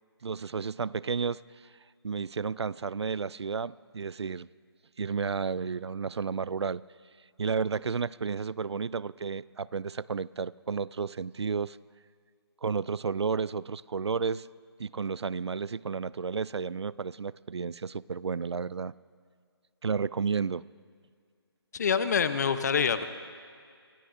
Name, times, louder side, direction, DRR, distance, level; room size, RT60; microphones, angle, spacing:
voice 1, 0.2-1.4 2.0-4.5 5.0-6.8 7.4-11.8 12.6-14.5 14.8-18.9 19.8-20.6, right 5 dB, 80° right, 21 dB, 0.4 m, -32 dB
voice 2, 21.7-23.0, left 6 dB, 40° left, 11 dB, 0.8 m, -26 dB
25.5 x 17.5 x 2.6 m, 2.1 s
figure-of-eight pair, 155°, 14 cm